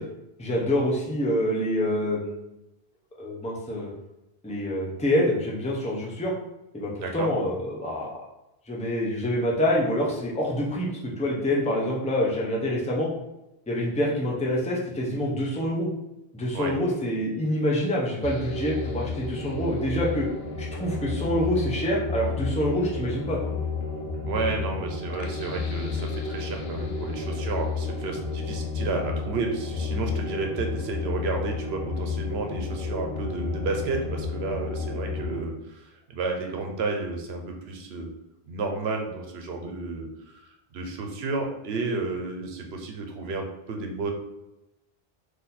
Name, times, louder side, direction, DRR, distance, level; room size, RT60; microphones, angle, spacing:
voice 1, 0.4-2.4 3.2-3.9 4.4-6.3 6.7-8.2 8.7-13.1 13.7-15.9 16.3-20.3 20.6-23.4, equal, 10° left, -3 dB, 0.7 m, -26 dB
voice 2, 7.0-7.3 16.5-16.7 24.3-38.1 38.5-44.1, right 3 dB, 85° right, 3 dB, 0.9 m, -32 dB
sound 1, 18.2-35.4, left 4 dB, 75° left, 0.8 m, -31 dB
4.1 x 2.7 x 4.1 m, 0.91 s
omnidirectional pair, 1.0 m